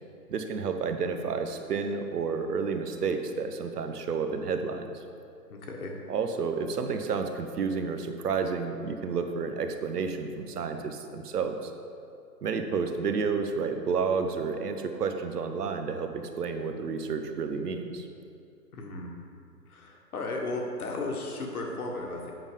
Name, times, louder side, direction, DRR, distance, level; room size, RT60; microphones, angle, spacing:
voice 1, 0.3-4.9 6.1-11.7 12.4-18.1, right 5 dB, 70° right, 7 dB, 1.0 m, -30 dB
voice 2, 5.5-6.0 18.7-19.1 19.7-22.3, left 2 dB, 60° left, 1 dB, 1.7 m, -35 dB
8.1 x 5.5 x 5.3 m, 2.5 s
hypercardioid pair, 145°, 49 cm